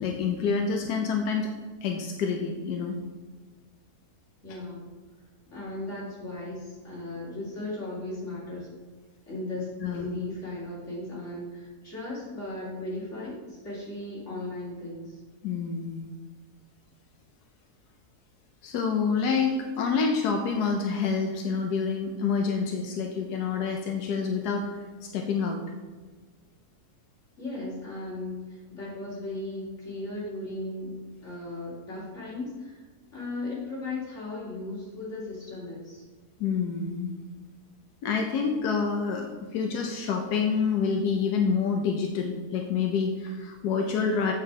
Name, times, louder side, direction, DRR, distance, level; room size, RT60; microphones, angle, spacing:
voice 1, 0.0-1.5 1.8-3.0 9.8-10.1 15.4-16.1 18.6-24.7 25.0-25.6 36.4-37.1 38.0-44.3, left 5 dB, 90° left, 3 dB, 1.3 m, -27 dB
voice 2, 4.4-4.9 5.5-8.7 9.3-15.2 27.4-31.0 31.2-32.8 33.1-36.0, left 2 dB, 50° left, -7 dB, 3.0 m, -36 dB
8.0 x 4.6 x 4.7 m, 1.4 s
omnidirectional pair, 1.7 m